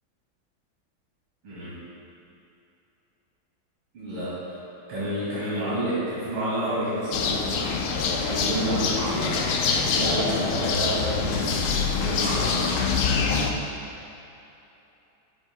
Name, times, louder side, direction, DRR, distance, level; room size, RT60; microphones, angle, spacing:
voice 1, 3.9-4.5 4.9-11.5 11.9-12.9, equal, 75° right, -11 dB, 3.1 m, -29 dB
sound 1, 7.1-13.5, left 5 dB, 85° left, 1.5 m, -25 dB
12.5 x 9.3 x 2.2 m, 2.9 s
omnidirectional pair, 2.2 m